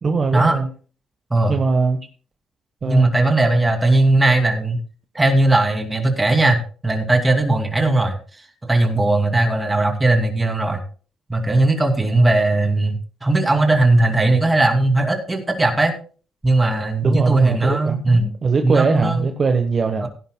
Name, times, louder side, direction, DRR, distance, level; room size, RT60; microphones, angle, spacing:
voice 1, 0.0-0.7 1.5-2.0 2.8-3.1 17.0-20.1, right 4 dB, 40° right, 5 dB, 1.2 m, -20 dB
voice 2, 2.8-4.8 5.1-8.2 8.6-10.8 11.3-12.9 13.2-15.9 16.4-18.2 18.6-19.3 20.0-20.1, right 2 dB, 15° right, 4 dB, 2.6 m, -18 dB
17.0 x 10.5 x 2.3 m, 0.39 s
cardioid pair, 90°, 0 cm